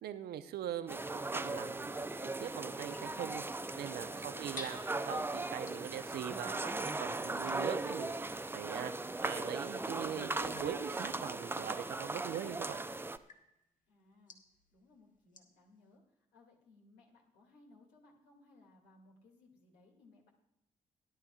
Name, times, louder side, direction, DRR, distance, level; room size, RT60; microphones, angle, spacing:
voice 1, 0.0-3.4 3.8-4.8 5.1-8.9 9.2-12.8, right 10 dB, 60° right, 10 dB, 0.8 m, -42 dB
sound 1, 0.9-13.2, right 2 dB, 10° right, 0.6 m, -38 dB
voice 2, 3.6-4.6 13.9-14.4 14.7-16.0 16.3-20.3, left 3 dB, 70° left, 1 dB, 2.4 m, -63 dB
sound 2, 4.5-8.6 9.2-15.7, left 1 dB, 45° left, 1.6 m, -57 dB
18.0 x 11.0 x 2.4 m, 0.86 s
hypercardioid pair, 40°, 18 cm